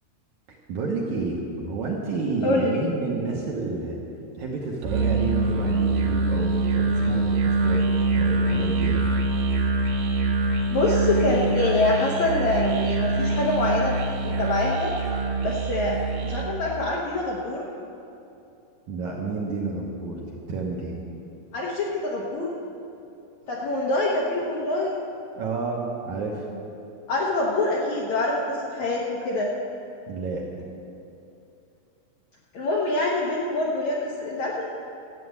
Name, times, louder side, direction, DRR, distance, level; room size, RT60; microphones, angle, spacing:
voice 1, 0.7-4.0 4.4-7.8 8.1-9.0 18.9-21.0 25.4-25.8 26.0-26.4 30.1-30.4, right 3 dB, 65° right, -2 dB, 2.0 m, -30 dB
voice 2, 2.4-2.8 10.7-14.0 14.2-15.0 15.4-17.7 21.5-22.5 23.5-25.0 27.1-29.5 32.5-34.7, left 2 dB, 70° left, -3 dB, 1.8 m, -25 dB
Musical instrument, 4.8-16.6, right 3 dB, 85° right, 3.5 m, -24 dB
13.0 x 8.4 x 8.1 m, 2.8 s
omnidirectional pair, 4.7 m